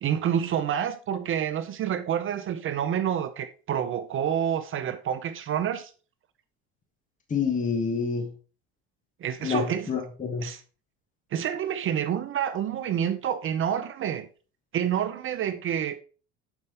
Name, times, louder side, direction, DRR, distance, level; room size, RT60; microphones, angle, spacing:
voice 1, 0.0-5.9 9.2-10.0 10.4-10.6 11.3-14.3 14.7-16.0, right 9 dB, 40° right, 0.6 m, -28 dB
voice 2, 7.3-8.3 9.4-10.4, left 6 dB, 25° left, 1.2 m, -27 dB
7.1 x 5.3 x 3.3 m
supercardioid pair, 100°, 32 cm